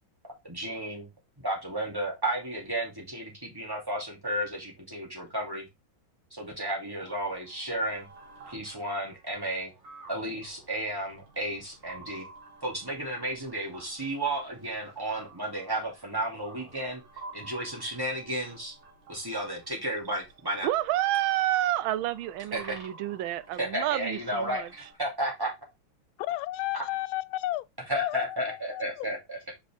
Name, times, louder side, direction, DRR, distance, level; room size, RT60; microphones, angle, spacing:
voice 1, 0.4-1.1 1.4-5.7 6.3-8.1 8.5-9.7 10.1-12.3 12.6-17.0 17.3-18.7 19.1-20.7 22.5-22.8 23.6-25.5 27.9-29.4, right 1 dB, 10° right, 2.5 m, -33 dB
sound 1, 7.0-24.9, right 3 dB, 65° right, 2.6 m, -52 dB
voice 2, 20.6-24.7, right 14 dB, 85° right, 1.4 m, -29 dB
voice 3, 26.2-27.6 27.9-28.8, left 15 dB, 85° left, 1.4 m, -32 dB
5.4 x 5.1 x 3.5 m
omnidirectional pair, 2.2 m